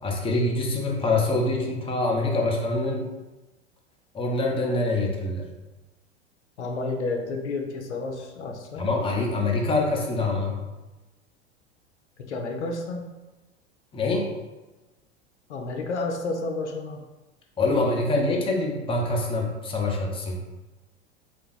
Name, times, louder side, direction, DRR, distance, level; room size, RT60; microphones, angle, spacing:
voice 1, 0.0-3.0 4.1-5.5 8.8-10.6 13.9-14.3 17.6-20.4, left 2 dB, 15° left, -1 dB, 0.7 m, -25 dB
voice 2, 6.6-8.9 12.2-13.1 15.5-17.0, left 3 dB, 80° left, 2 dB, 0.6 m, -31 dB
3.4 x 2.6 x 3.8 m, 1.1 s
figure-of-eight pair, 85°, 34 cm